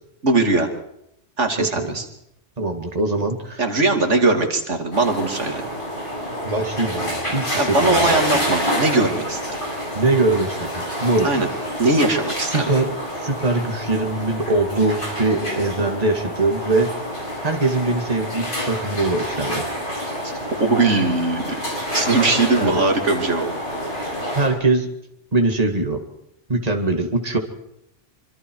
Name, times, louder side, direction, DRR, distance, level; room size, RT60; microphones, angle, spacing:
voice 1, 0.2-0.7 1.4-2.1 3.6-5.6 7.6-9.4 11.2-11.5 11.8-12.7 20.6-21.6 21.9-23.5, right 3 dB, 80° right, 4 dB, 2.9 m, -20 dB
voice 2, 1.6-2.0 2.6-3.6 6.4-8.4 10.0-11.3 12.5-16.9 17.4-19.7 22.6-22.8 24.3-24.9 25.3-26.0 26.5-27.4, right 2 dB, 35° right, 3 dB, 2.3 m, -22 dB
sound 1, 4.9-24.5, equal, 45° left, 8.1 m, -28 dB
25.5 x 25.5 x 4.7 m, 0.79 s
omnidirectional pair, 1.2 m